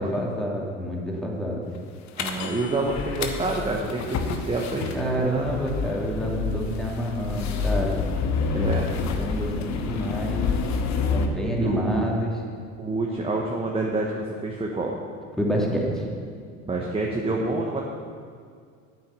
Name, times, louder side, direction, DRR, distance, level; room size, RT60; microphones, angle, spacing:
voice 1, 0.0-1.6 4.9-8.0 9.2-10.5 11.1-12.3 15.4-16.1, equal, ahead, -3 dB, 2.7 m, -28 dB
sound 1, 2.2-11.3, left 5 dB, 45° left, 1.2 m, -28 dB
voice 2, 2.2-5.5 8.5-8.9 11.6-12.1 12.8-14.9 16.6-17.8, right 2 dB, 15° right, -1 dB, 1.4 m, -27 dB
8.9 x 8.4 x 7.1 m, 2.1 s
hypercardioid pair, 70°, 40 cm